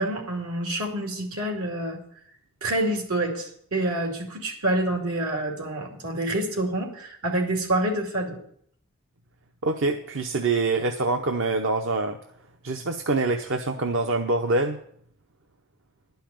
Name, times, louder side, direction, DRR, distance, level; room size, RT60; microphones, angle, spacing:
voice 1, 0.0-2.0 2.6-8.4, right 1 dB, 80° right, 2 dB, 2.5 m, -27 dB
voice 2, 9.6-12.2 12.6-14.8, right 3 dB, 60° right, 5 dB, 0.7 m, -25 dB
11.5 x 5.7 x 8.7 m, 0.65 s
head